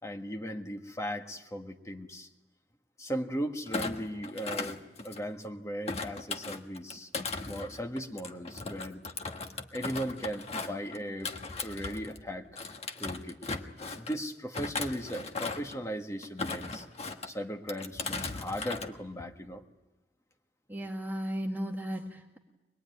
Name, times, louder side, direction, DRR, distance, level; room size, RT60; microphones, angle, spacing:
voice 1, 0.0-2.3 3.0-7.1 7.5-9.0 9.7-11.3 11.6-12.6 13.0-13.4 14.0-16.8 17.2-19.6, equal, 15° left, 4 dB, 1.6 m, -37 dB
Thump thud, 3.7-5.4 5.9-12.2 12.5-14.2 14.5-15.8 16.2-17.3 17.7-18.9 19.2-19.5, left 3 dB, 35° left, 1.4 m, -37 dB
voice 2, 20.7-22.4, equal, 10° right, 1 dB, 1.9 m, -35 dB
24.0 x 21.5 x 9.5 m, 1.0 s
head